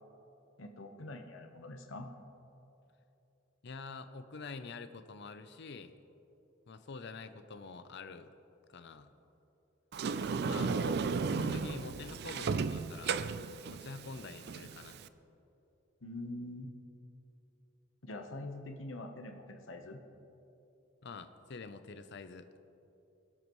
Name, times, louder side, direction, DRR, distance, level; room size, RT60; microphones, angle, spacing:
voice 1, 0.6-2.1 10.5-11.0 16.0-16.7 18.0-20.0, left 2 dB, 75° left, 5 dB, 1.0 m, -44 dB
voice 2, 3.6-5.9 6.7-8.3 8.7-9.1 10.5-10.7 11.3-13.2 13.7-15.0 21.0-22.5, left 4 dB, 60° left, 10 dB, 0.6 m, -46 dB
Sliding door, 9.9-15.1, right 5 dB, 55° right, 0.4 m, -34 dB
21.5 x 11.5 x 3.1 m, 2.9 s
head